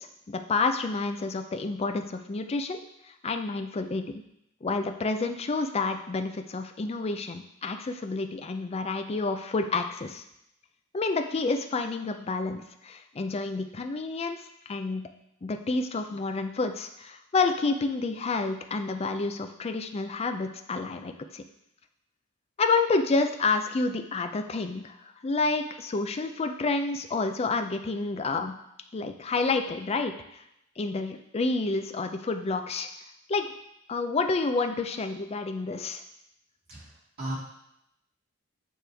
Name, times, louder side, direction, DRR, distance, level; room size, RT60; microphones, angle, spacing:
voice 1, 0.0-2.8 3.2-4.2 4.6-10.2 10.9-15.1 15.4-21.4 22.6-25.0 25.2-28.5 28.9-30.4 30.8-32.9 33.3-33.5 33.9-36.0, left 3 dB, 25° left, 7 dB, 0.4 m, -29 dB
voice 2, 36.7-37.3, right 1 dB, 45° right, -8 dB, 2.3 m, -36 dB
8.8 x 3.1 x 3.4 m, 0.81 s
head